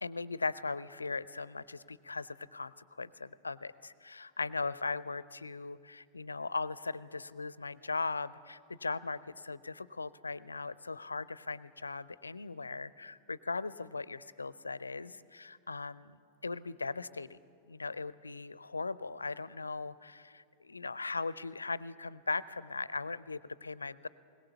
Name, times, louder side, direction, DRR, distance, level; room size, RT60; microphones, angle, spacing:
voice 1, 0.0-16.2 16.4-17.4 17.7-24.1, left 3 dB, 80° left, 19 dB, 0.5 m, -39 dB
21.0 x 19.0 x 7.0 m, 2.4 s
figure-of-eight pair, 90°, 0 cm